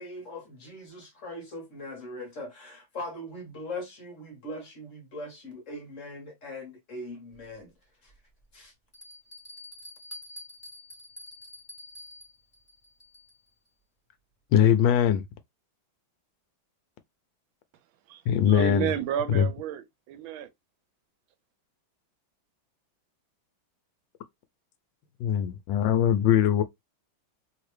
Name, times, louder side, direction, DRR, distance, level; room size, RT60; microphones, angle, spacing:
voice 1, 0.0-7.7 8.0-8.1 8.5-8.7, left 1 dB, 50° left, 1.1 m, -40 dB
Bell, 7.3-7.4 8.1-8.2 8.9-13.5, left 1 dB, 25° left, 1.7 m, -47 dB
voice 2, 14.5-15.2 18.3-18.9 19.3-19.5 25.2-26.6, left 9 dB, 75° left, 1.2 m, -21 dB
voice 3, 18.5-20.5, right 10 dB, 80° right, 1.4 m, -31 dB
3.2 x 2.8 x 3.1 m
omnidirectional pair, 2.2 m